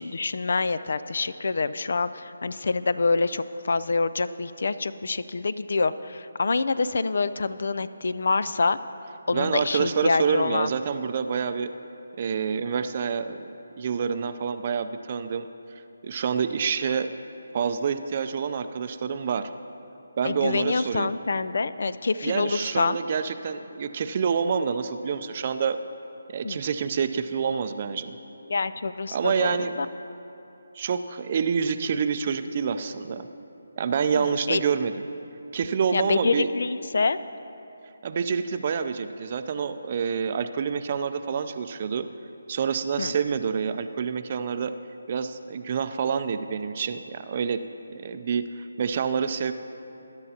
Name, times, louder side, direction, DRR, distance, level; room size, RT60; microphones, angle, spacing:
voice 1, 0.0-8.8 9.3-10.7 20.2-23.0 26.4-26.6 28.5-29.9 34.1-34.6 35.9-37.2 43.0-43.1, left 3 dB, 60° left, 14 dB, 0.4 m, -26 dB
voice 2, 9.3-11.7 12.2-13.5 13.8-15.5 16.0-17.1 17.5-19.5 20.2-21.1 22.2-25.8 26.3-28.1 29.1-29.7 30.7-33.3 33.8-34.9 35.5-36.5 38.0-42.1 42.5-44.7 45.1-47.6 47.9-49.5, right 6 dB, 35° right, 10 dB, 0.5 m, -27 dB
20.5 x 10.5 x 2.8 m, 3.0 s
figure-of-eight pair, 160°, 0 cm